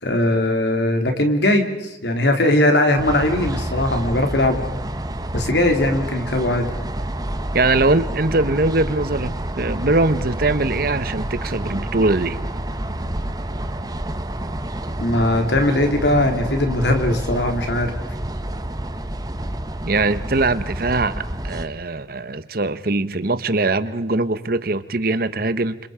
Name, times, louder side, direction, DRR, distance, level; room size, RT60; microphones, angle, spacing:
voice 1, 0.0-4.6 5.3-6.7 15.0-17.9, left 1 dB, 75° left, 5 dB, 3.4 m, -19 dB
sound 1, 3.0-21.7, right 1 dB, 20° right, 1.1 m, -28 dB
voice 2, 7.5-12.4 19.8-25.9, right 2 dB, 55° right, 13 dB, 1.1 m, -21 dB
29.5 x 26.0 x 5.1 m, 0.89 s
head